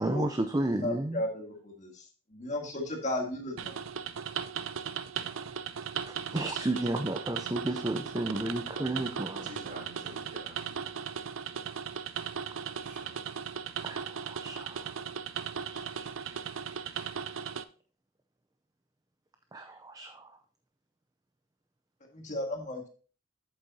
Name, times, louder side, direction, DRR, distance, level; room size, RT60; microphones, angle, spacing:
voice 1, 0.0-1.2 5.3-5.6 6.1-9.5 13.8-14.9 15.7-17.5 19.5-20.4, right 1 dB, 20° right, 7 dB, 0.5 m, -34 dB
voice 2, 0.8-2.0 2.3-3.7 22.1-22.9, left 1 dB, 35° left, 2 dB, 1.7 m, -34 dB
sound 1, 3.6-17.6, right 7 dB, 80° right, 0.5 m, -37 dB
voice 3, 9.4-10.8 12.7-13.2, right 1 dB, 40° right, -1 dB, 3.0 m, -48 dB
8.2 x 7.9 x 2.7 m, 0.38 s
head